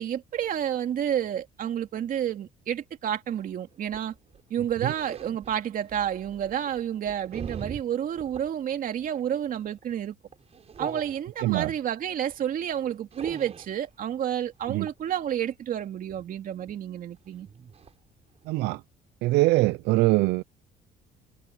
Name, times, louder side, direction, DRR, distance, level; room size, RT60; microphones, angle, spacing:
voice 1, 0.0-4.1 4.5-10.1 10.8-17.5, right 10 dB, 55° right, 2.6 m, -30 dB
sound 1, 3.7-8.5 8.9-9.2 9.5-9.8 10.3-11.8 12.3-12.4 12.6-13.8 14.6-15.0 16.1-16.3 16.7-16.8 17.1-17.2 17.4-17.9 18.4-18.5, right 6 dB, 40° right, 5.7 m, -42 dB
voice 2, 11.4-11.7 14.7-14.9 18.5-18.8 19.2-20.4, right 19 dB, 85° right, 0.6 m, -23 dB
cardioid pair, 110°, 17 cm